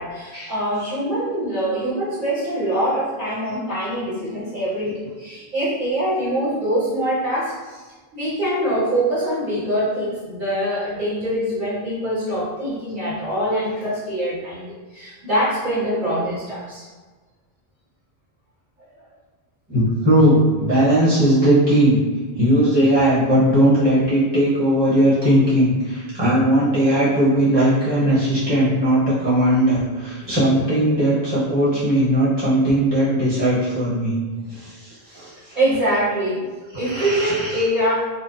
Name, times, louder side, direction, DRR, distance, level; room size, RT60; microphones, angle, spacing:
voice 1, 0.0-7.8 8.1-16.8 30.2-30.3 35.1-36.4 36.8-37.9, right 1 dB, 55° right, -11 dB, 0.9 m, -24 dB
voice 2, 19.7-22.0 22.3-34.2 34.5-35.6 36.7-37.5, right 1 dB, 25° right, -9 dB, 0.9 m, -18 dB
2.4 x 2.2 x 2.4 m, 1.3 s
omnidirectional pair, 1.0 m